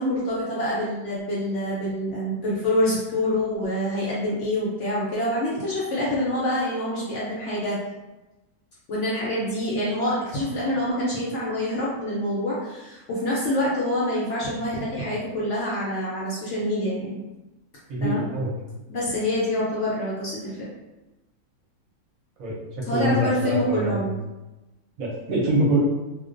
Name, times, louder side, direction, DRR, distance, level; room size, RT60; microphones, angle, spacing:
voice 1, 0.0-7.8 8.9-17.2 18.0-18.3 18.9-20.6 22.8-24.1, left 1 dB, 65° left, -6 dB, 0.7 m, -26 dB
voice 2, 17.9-18.5 22.4-24.0 25.0-25.8, right 1 dB, 70° right, -4 dB, 1.0 m, -24 dB
2.4 x 2.1 x 2.4 m, 1.1 s
omnidirectional pair, 1.6 m